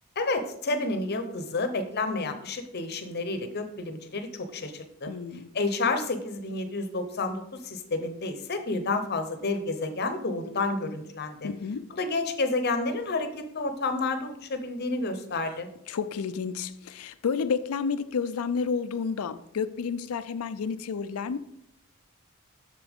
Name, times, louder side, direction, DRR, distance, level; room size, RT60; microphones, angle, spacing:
voice 1, 0.2-5.1 5.5-11.5 11.9-15.7, left 3 dB, 50° left, 0.8 m, -30 dB
voice 2, 5.1-5.5 11.4-11.8 15.9-21.4, left 5 dB, 80° left, 0.4 m, -30 dB
7.0 x 6.7 x 3.6 m
head